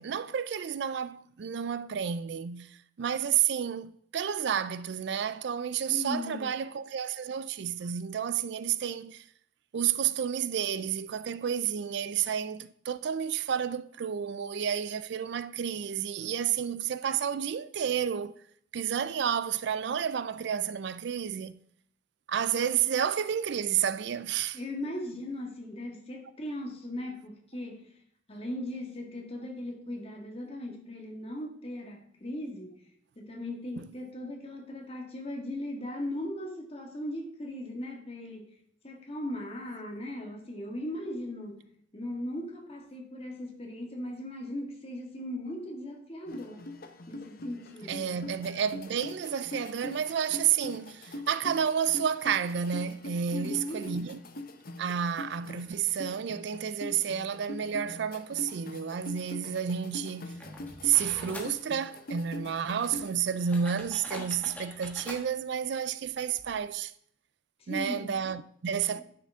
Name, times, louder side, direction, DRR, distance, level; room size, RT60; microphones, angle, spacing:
voice 1, 0.0-9.2 9.7-18.3 18.7-21.6 22.3-24.6 33.8-33.9 47.9-54.2 54.8-60.3 60.8-66.9 67.7-69.0, right 8 dB, 60° right, 0.4 m, -30 dB
voice 2, 5.9-6.5 24.5-27.9 28.3-32.8 33.1-38.6 38.8-41.7 41.9-46.6 47.1-48.2 53.3-53.9 67.6-68.1 68.9-69.0, left 1 dB, 30° left, 1.7 m, -38 dB
sound 1, 46.3-63.1, left 2 dB, 50° left, 0.9 m, -43 dB
sound 2, 60.3-61.6 62.4-62.5 62.8-65.2 66.1-66.2 66.4-66.6, left 1 dB, 10° left, 1.4 m, -44 dB
11.0 x 6.7 x 3.5 m
head